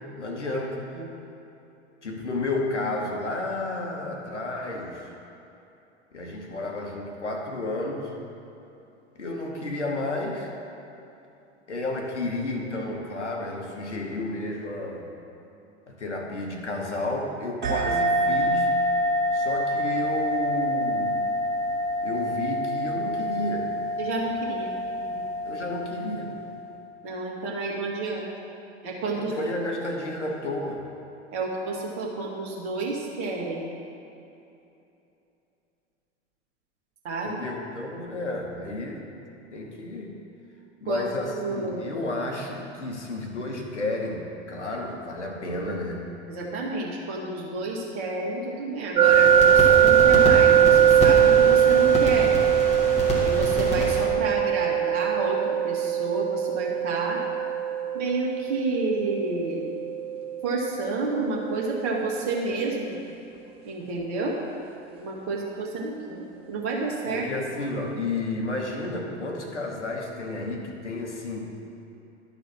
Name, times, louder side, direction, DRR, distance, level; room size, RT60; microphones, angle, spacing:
voice 1, 0.2-0.8 2.0-5.1 6.1-8.1 9.2-10.5 11.7-15.1 15.9-18.7 19.3-21.3 22.0-23.7 25.4-26.4 29.1-30.9 37.2-39.1 39.5-40.2 40.8-46.0 67.1-71.5, left 2 dB, 80° left, 1 dB, 1.2 m, -31 dB
sound 1, 17.6-26.7, equal, 55° right, 1.9 m, -27 dB
voice 2, 24.0-24.7 25.1-25.2 27.0-28.3 28.8-29.3 31.3-33.7 37.0-37.4 39.5-39.7 40.9-41.9 46.3-52.3 53.2-57.2 57.9-59.8 60.4-63.0 63.6-64.4 65.0-67.3, right 3 dB, 40° right, -2 dB, 1.7 m, -30 dB
sound 2, 49.0-54.0, left 1 dB, 20° left, 1.9 m, -28 dB
sound 3, 49.0-61.9, right 9 dB, 15° right, 0.4 m, -21 dB
12.0 x 4.0 x 6.1 m, 2.9 s
figure-of-eight pair, 85°, 35 cm